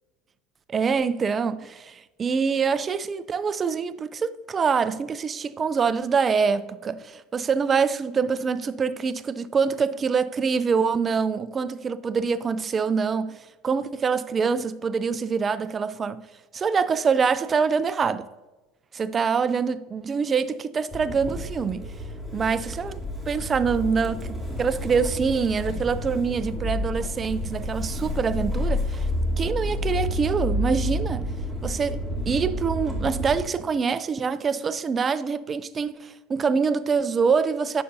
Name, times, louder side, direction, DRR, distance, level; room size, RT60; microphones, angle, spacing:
voice 1, 0.7-16.2 16.5-18.3 19.0-21.9 22.3-23.0 23.3-29.1 29.4-31.2 31.6-32.0 32.3-37.8, right 5 dB, 25° right, 0.4 m, -25 dB
Motor vehicle (road) / Engine starting, 20.9-33.4, left 1 dB, 10° left, 2.2 m, -30 dB
9.4 x 6.6 x 2.6 m
supercardioid pair, 115°, 0 cm